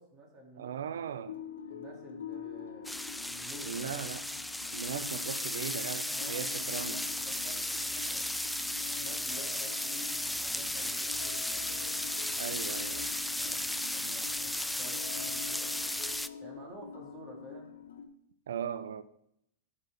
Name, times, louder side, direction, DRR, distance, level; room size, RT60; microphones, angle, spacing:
voice 1, 0.0-1.2 1.7-3.0 3.2-4.0 6.1-8.3 8.9-12.0 13.3-13.7 13.9-15.8 16.4-17.7, right 2 dB, 25° right, 2.7 m, -51 dB
voice 2, 0.6-1.4 3.6-4.2 4.7-7.0 12.4-13.1 18.5-19.0, right 8 dB, 75° right, 0.5 m, -38 dB
sound 1, 1.3-18.1, left 7 dB, 80° left, 0.8 m, -46 dB
sound 2, 2.8-16.3, left 1 dB, 5° left, 0.3 m, -35 dB
11.0 x 4.4 x 4.9 m
hypercardioid pair, 110°, 0 cm